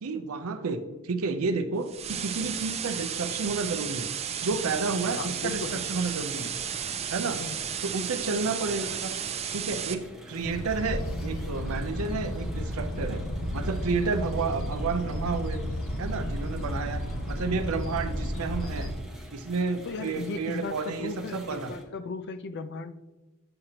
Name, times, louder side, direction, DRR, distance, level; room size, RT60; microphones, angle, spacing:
voice 1, 0.0-4.1 4.4-6.5 7.1-7.4 7.8-9.2 9.5-13.2 13.5-15.6 16.0-17.0 17.3-18.9 19.3-21.7, right 4 dB, 85° right, 8 dB, 0.6 m, -31 dB
sound 1, 1.9-9.9, right 8 dB, 30° right, 0.5 m, -33 dB
sound 2, 4.8-21.8, equal, ahead, 0.8 m, -48 dB
voice 2, 5.1-5.9 7.4-7.6 19.8-22.9, left 3 dB, 55° left, 11 dB, 0.5 m, -36 dB
sound 3, 10.4-18.9, equal, 70° left, 1.0 m, -32 dB
8.7 x 6.5 x 2.9 m, 1.1 s
head